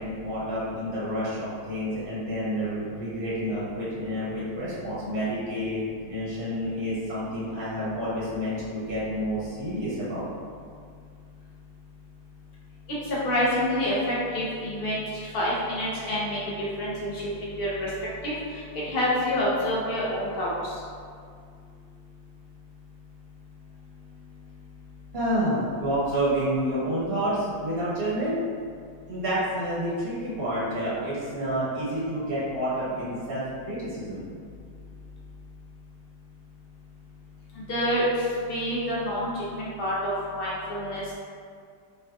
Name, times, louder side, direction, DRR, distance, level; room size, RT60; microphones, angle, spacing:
voice 1, 0.0-10.2 25.1-28.4 29.1-34.2, equal, 55° right, -9 dB, 1.6 m, -29 dB
voice 2, 13.1-17.9 18.2-18.3 18.7-20.5 37.7-38.0 38.5-41.0, equal, 75° left, -7 dB, 0.5 m, -27 dB
4.7 x 2.7 x 2.2 m, 2.2 s
omnidirectional pair, 2.0 m